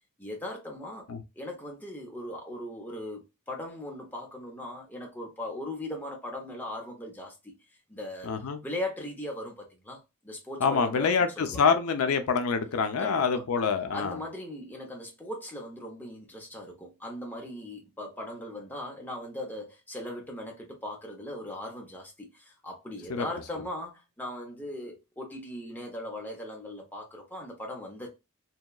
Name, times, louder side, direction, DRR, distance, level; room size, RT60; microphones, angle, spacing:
voice 1, 0.2-1.0 1.4-7.5 7.9-8.3 8.6-11.7 13.0-13.4 13.9-28.1, left 1 dB, 10° left, 0.6 m, -39 dB
voice 2, 8.2-8.6 10.6-14.2 23.1-23.3, left 5 dB, 75° left, 0.4 m, -26 dB
2.8 x 2.2 x 2.2 m
head